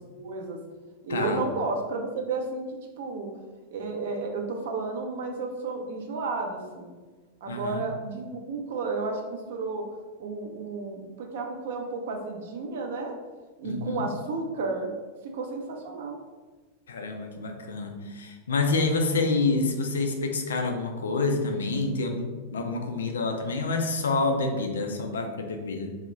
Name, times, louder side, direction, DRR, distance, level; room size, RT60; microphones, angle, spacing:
voice 1, 0.1-0.6 1.0-2.6 3.0-3.3 3.7-6.9 7.4-9.9 10.2-13.1 13.6-14.9 15.3-16.2, right 3 dB, 55° right, 2 dB, 0.4 m, -32 dB
voice 2, 1.1-1.4 7.5-7.8 13.6-14.0 16.9-26.0, left 3 dB, 65° left, 4 dB, 0.3 m, -28 dB
2.2 x 2.0 x 3.7 m, 1.3 s
figure-of-eight pair, 90°, 0 cm